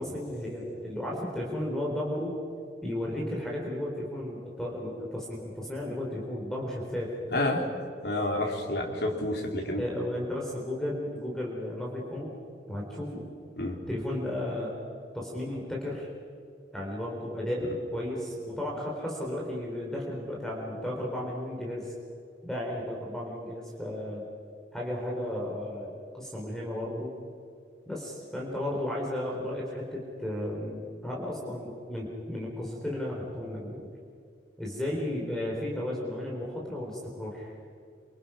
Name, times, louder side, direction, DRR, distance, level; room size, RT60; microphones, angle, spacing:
voice 1, 0.0-2.3 2.8-7.1 9.8-12.4 12.7-13.2 13.9-14.7 15.1-16.1 16.7-21.9 22.4-24.3 24.7-27.1 27.9-33.9 34.6-37.5, left 1 dB, 5° left, -3 dB, 3.9 m, -34 dB
voice 2, 7.3-7.7 8.0-9.8 13.6-13.8, left 1 dB, 60° left, 0 dB, 4.0 m, -29 dB
28.0 x 25.5 x 5.9 m, 2.3 s
head